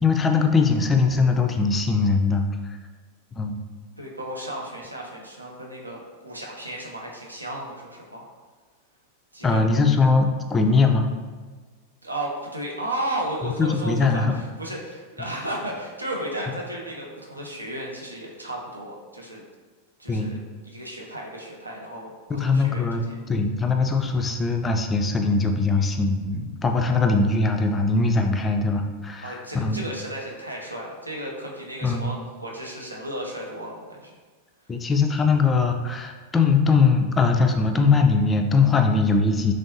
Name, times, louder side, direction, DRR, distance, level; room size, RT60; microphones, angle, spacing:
voice 1, 0.0-2.5 3.4-3.6 9.4-11.1 13.4-14.3 20.1-20.3 22.3-23.0 23.3-29.8 31.8-32.1 34.7-39.5, left 4 dB, 20° left, 5 dB, 0.3 m, -21 dB
voice 2, 4.0-8.3 9.3-9.6 12.0-19.4 20.0-20.4 20.6-23.1 29.2-34.1, right 1 dB, 85° right, -2 dB, 0.5 m, -34 dB
3.2 x 2.6 x 2.7 m, 1.4 s
figure-of-eight pair, 90°, 0 cm